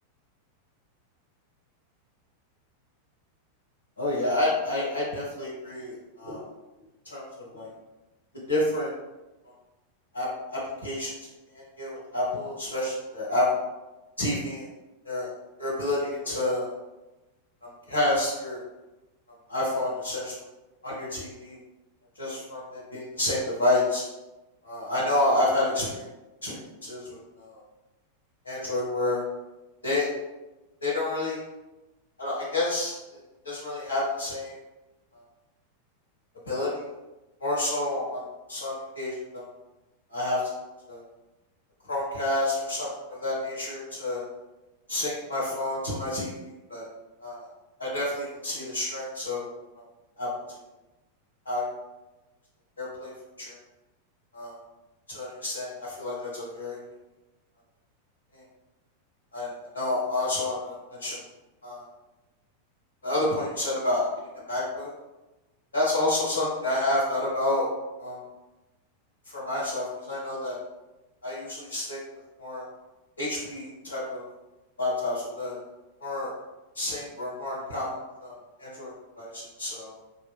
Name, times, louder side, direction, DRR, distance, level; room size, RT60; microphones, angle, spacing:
voice 1, 4.0-6.4 7.1-7.3 7.5-7.7 8.5-8.9 10.1-13.6 14.2-14.7 15.0-15.3 15.6-16.7 17.6-18.6 19.5-20.4 20.8-21.6 22.2-24.0 24.6-26.1 26.4-27.6 28.4-29.2 29.8-30.1 30.8-31.4 32.2-33.2 33.4-34.6 36.5-36.8 37.4-38.2 38.5-39.4 40.1-40.4 40.9-41.0 41.8-44.2 44.9-46.9 47.2-47.5 47.8-49.5 50.2-50.3 51.5-51.7 52.8-53.1 53.4-53.6 54.3-54.6 55.1-56.8 58.3-58.4 59.3-61.2 61.6-61.8 63.0-64.1 64.5-64.9 65.7-67.7 68.0-68.2 69.3-70.6 71.2-72.0 72.4-72.6 73.2-74.2 74.8-75.6 76.0-76.3 76.8-79.9, left 2 dB, 75° left, -6 dB, 0.8 m, -29 dB
2.7 x 2.7 x 2.2 m, 1.1 s
figure-of-eight pair, 90°, 0 cm